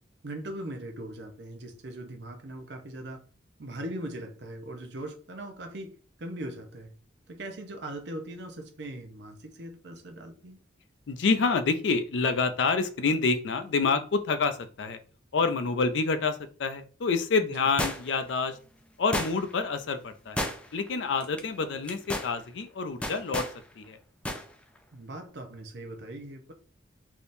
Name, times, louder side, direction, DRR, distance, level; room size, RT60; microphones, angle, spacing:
voice 1, 0.2-3.2 3.6-6.9 7.3-10.6 17.4-17.7 24.9-26.5, right 1 dB, 65° right, 0.7 m, -40 dB
voice 2, 11.1-15.0 15.3-18.6 19.0-23.4 23.8-24.0, left 4 dB, 75° left, 0.4 m, -27 dB
sound 1, 17.8-18.3 19.1-19.6 20.4-20.9 21.2-21.4 21.8-22.3 23.0-23.6 24.2-24.4 24.8-24.9, left 1 dB, 5° left, 0.3 m, -32 dB
3.4 x 2.8 x 2.6 m
head